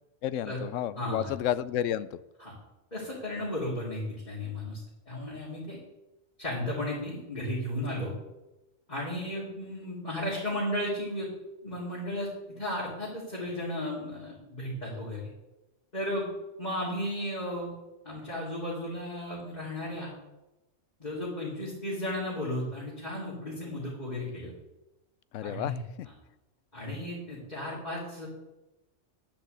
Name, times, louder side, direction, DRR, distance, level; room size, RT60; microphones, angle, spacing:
voice 1, 0.2-2.2 25.3-26.1, left 11 dB, 85° left, 16 dB, 0.9 m, -31 dB
voice 2, 1.0-1.3 2.4-2.5 2.9-4.8 5.1-5.8 6.4-8.1 8.9-11.3 11.6-12.3 12.6-15.2 15.9-16.3 16.6-17.7 18.0-20.1 21.0-24.5 25.4-25.8 26.7-28.3, left 1 dB, 35° left, -8 dB, 3.3 m, -34 dB
10.0 x 6.0 x 8.0 m, 0.96 s
omnidirectional pair, 1.3 m